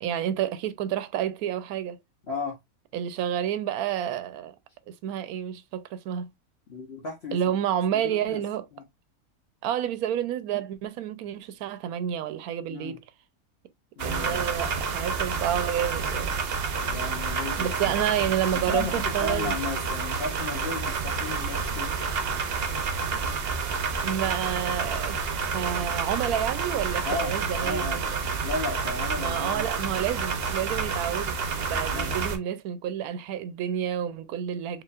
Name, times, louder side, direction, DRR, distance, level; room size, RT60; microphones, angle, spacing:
voice 1, 0.0-2.0 2.9-4.5 4.9-6.3 7.3-8.7 9.6-13.0 14.0-16.4 17.6-19.5 24.0-25.2 25.5-28.2 29.2-34.8, right 10 dB, 90° right, 1.1 m, -29 dB
voice 2, 2.3-2.6 6.7-7.4 7.9-8.4 8.7-8.8 12.7-13.0 14.0-14.5 16.8-17.9 18.5-22.2 27.0-27.3 27.6-28.0 28.4-29.6 31.9-32.2, left 3 dB, 50° left, 1.1 m, -34 dB
sound 1, 14.0-32.4, right 5 dB, 55° right, 0.8 m, -29 dB
4.8 x 2.7 x 2.4 m
omnidirectional pair, 1.5 m